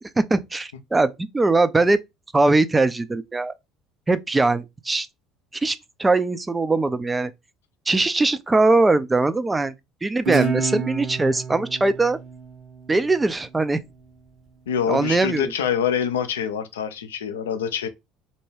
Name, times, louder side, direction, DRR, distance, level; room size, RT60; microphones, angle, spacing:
voice 1, 0.2-2.0 2.3-3.5 4.1-5.1 5.6-7.3 7.9-9.7 10.0-12.2 12.9-13.8 14.9-15.5, right 2 dB, 15° right, 0.4 m, -21 dB
Guitar, 10.2-13.5, right 5 dB, 50° right, 1.1 m, -29 dB
voice 2, 14.7-17.9, left 8 dB, 80° left, 0.4 m, -25 dB
2.6 x 2.2 x 3.3 m
hypercardioid pair, 65°, 0 cm